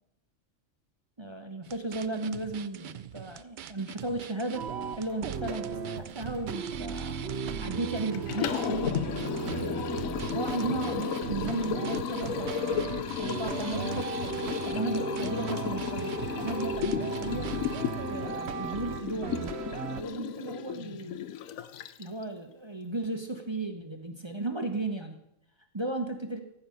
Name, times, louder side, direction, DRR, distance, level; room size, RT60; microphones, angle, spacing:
voice 1, 1.2-4.7 5.0-7.2 7.6-9.8 10.3-14.2 14.6-17.5 18.1-19.5 19.9-21.2 22.0-25.2 25.7-26.4, right 2 dB, 25° right, 5 dB, 0.9 m, -35 dB
sound 1, 1.6-17.9, right 10 dB, 75° right, 0.4 m, -44 dB
sound 2, 4.6-20.0, right 5 dB, 55° right, 0.9 m, -36 dB
Liquid, 8.1-22.2, left 10 dB, 75° left, 1.1 m, -34 dB
14.5 x 5.6 x 8.5 m, 0.83 s
omnidirectional pair, 1.4 m